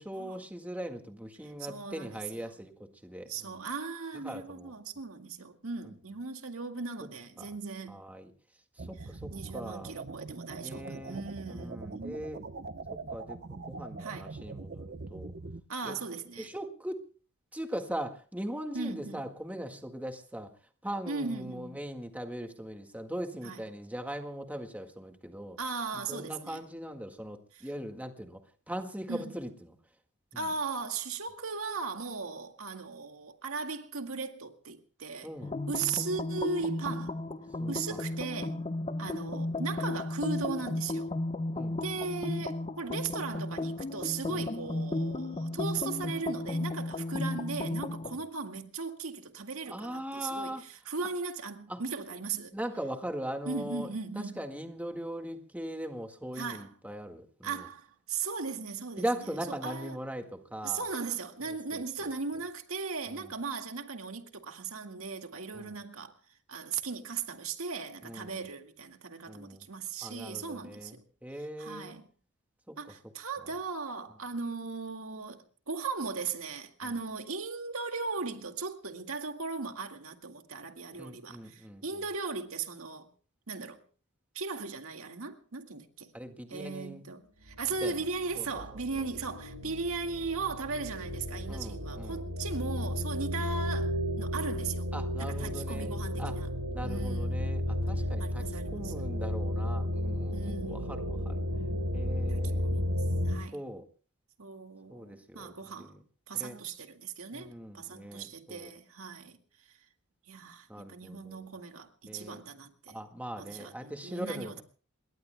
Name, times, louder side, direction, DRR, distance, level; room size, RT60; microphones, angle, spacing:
voice 1, 0.0-3.6 4.2-4.7 5.9-6.0 7.4-7.5 7.9-8.3 8.8-10.0 10.6-11.2 11.5-12.4 12.9-15.3 15.8-16.0 16.4-17.1 17.5-20.5 20.8-25.6 25.9-28.4 28.7-29.8 30.3-30.5 35.2-35.5 37.6-38.0 41.5-41.9 44.3-44.4 49.7-50.6 51.7-51.8 52.5-53.9 54.2-57.7 59.0-60.9 61.5-62.1 63.1-63.3 65.5-65.8 68.0-68.3 69.3-69.6 70.0-71.9 72.7-72.8 76.8-76.9 80.9-81.8 86.1-87.0 87.8-88.0 88.4-88.5 88.9-89.1 91.5-92.2 94.9-96.3 96.7-98.5 98.7-101.4 101.9-102.8 103.5-103.8 104.9-106.0 106.3-106.6 107.3-108.7 110.7-111.5 112.0-112.4 112.9-114.6, equal, 5° right, 1.8 m, -40 dB
voice 2, 1.6-2.4 3.2-8.1 9.0-12.2 14.0-14.3 15.7-16.5 18.7-19.2 21.1-21.8 23.4-23.6 25.6-26.6 27.5-27.7 29.1-29.3 30.4-35.3 35.7-37.2 37.7-38.6 39.0-41.1 41.8-52.5 53.5-54.5 56.4-56.7 57.4-59.4 59.6-60.0 60.6-66.1 66.5-71.0 71.6-72.1 72.8-83.1 83.5-83.8 84.3-86.1 86.5-94.9 95.2-96.5 96.8-97.5 98.2-99.0 100.3-101.0 102.3-102.4 102.6-102.9 103.3-103.6 104.4-106.0 106.3-109.4 109.7-109.8 110.3-113.0 113.4-114.6, right 4 dB, 70° right, 2.0 m, -38 dB
sound 1, 8.8-15.6, right 3 dB, 50° right, 0.9 m, -43 dB
sound 2, 35.4-48.2, left 2 dB, 30° left, 1.0 m, -34 dB
sound 3, 87.4-103.4, equal, 90° right, 4.2 m, -33 dB
28.5 x 22.0 x 2.2 m
head